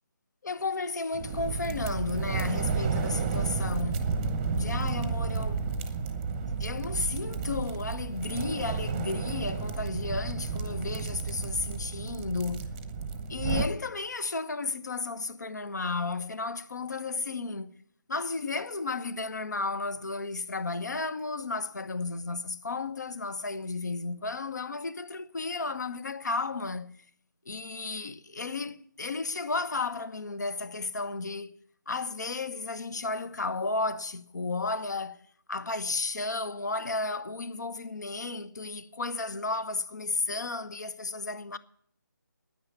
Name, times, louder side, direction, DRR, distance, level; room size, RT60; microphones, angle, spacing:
voice 1, 0.4-4.1 4.5-5.7 6.6-12.7 13.3-17.7 18.1-26.9 27.5-31.5 31.9-35.2 35.5-41.6, left 3 dB, 60° left, 1.0 m, -33 dB
sound 1, 1.1-13.7, right 4 dB, 15° right, 0.8 m, -31 dB
9.9 x 9.5 x 9.6 m
figure-of-eight pair, 155°, 11 cm